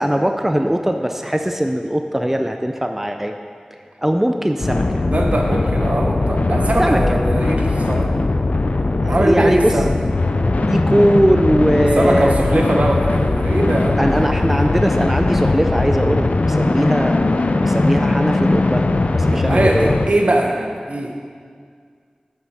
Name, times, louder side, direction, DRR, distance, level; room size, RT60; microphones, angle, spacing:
voice 1, 0.0-3.3 3.7-5.0 6.8-7.2 9.0-9.8 10.6-12.4 14.0-17.3 17.6-18.9 19.1-20.1, equal, 10° right, 5 dB, 0.5 m, -20 dB
sound 1, 4.6-20.1, left 2 dB, 70° left, 0.5 m, -19 dB
voice 2, 5.1-8.1 9.0-9.9 11.9-14.3 14.5-14.7 19.3-21.1, right 1 dB, 60° right, 2 dB, 1.1 m, -21 dB
7.7 x 7.5 x 5.6 m, 2.1 s
wide cardioid pair, 45°, 3 cm